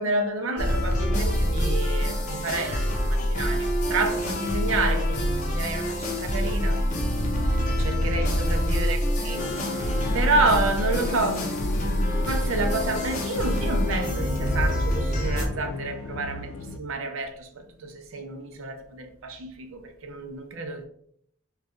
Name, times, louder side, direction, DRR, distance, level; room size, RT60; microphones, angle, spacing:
voice 1, 0.0-6.8 7.7-9.5 9.8-11.8 12.2-16.5 16.7-20.9, right 3 dB, 65° right, 0.6 m, -29 dB
sound 1, 0.6-15.5, equal, 35° left, 0.7 m, -26 dB
sound 2, 9.4-16.8, left 3 dB, 75° left, 0.3 m, -35 dB
3.1 x 2.3 x 3.6 m
head